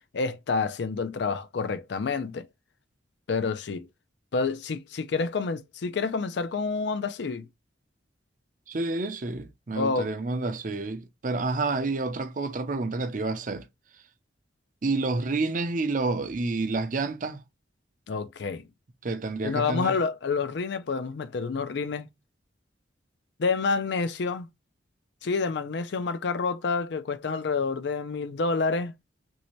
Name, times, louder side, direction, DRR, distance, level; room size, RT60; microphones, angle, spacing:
voice 1, 0.1-2.5 3.3-3.9 4.3-7.5 9.8-10.1 18.1-18.6 19.4-22.1 23.4-24.5 25.2-28.9, left 4 dB, 65° left, 0.4 m, -28 dB
voice 2, 8.7-13.7 14.8-17.4 19.0-20.0, right 3 dB, 45° right, 0.5 m, -29 dB
3.2 x 2.7 x 3.0 m
head